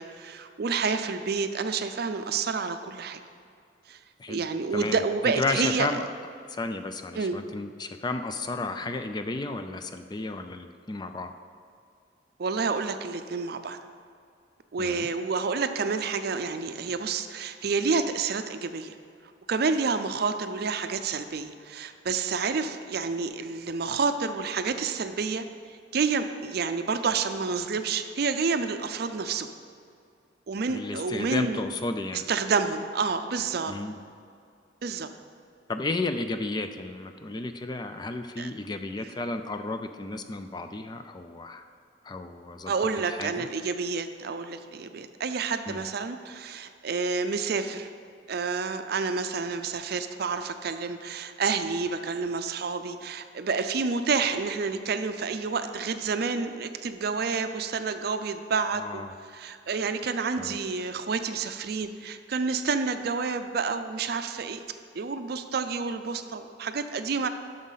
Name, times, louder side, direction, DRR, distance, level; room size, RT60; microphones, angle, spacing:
voice 1, 0.0-3.2 3.9-4.0 4.3-5.9 7.1-7.4 12.4-13.8 14.7-18.9 19.5-25.5 25.9-29.5 30.5-31.6 32.1-33.7 34.8-35.1 38.4-38.5 42.7-47.9 48.3-59.0 59.3-64.6 64.9-67.3, right 4 dB, 55° right, 9 dB, 0.5 m, -29 dB
voice 2, 5.4-6.1 6.5-11.3 14.8-15.1 30.7-32.2 33.7-34.0 35.7-41.6 42.0-42.7 43.1-43.5 45.7-45.8 58.8-59.1 60.4-60.5, left 2 dB, 20° left, 8 dB, 0.3 m, -33 dB
11.0 x 6.5 x 4.0 m, 2.4 s
head